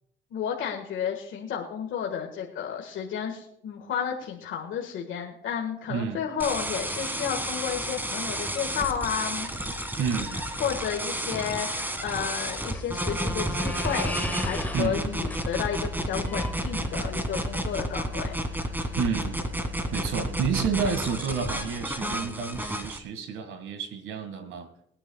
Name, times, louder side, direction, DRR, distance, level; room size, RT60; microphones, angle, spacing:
voice 1, 0.3-9.5 10.3-18.4, left 8 dB, 80° left, 1 dB, 1.7 m, -32 dB
voice 2, 5.9-6.2 10.0-10.4 14.7-15.1 19.0-19.4 19.9-24.7, right 6 dB, 90° right, 9 dB, 2.0 m, -30 dB
sound 1, 6.4-23.0, right 1 dB, 10° right, 1.8 m, -31 dB
sound 2, 12.3-17.3, left 1 dB, 10° left, 0.9 m, -39 dB
23.0 x 9.8 x 2.3 m, 0.75 s
cardioid pair, 90°, 20 cm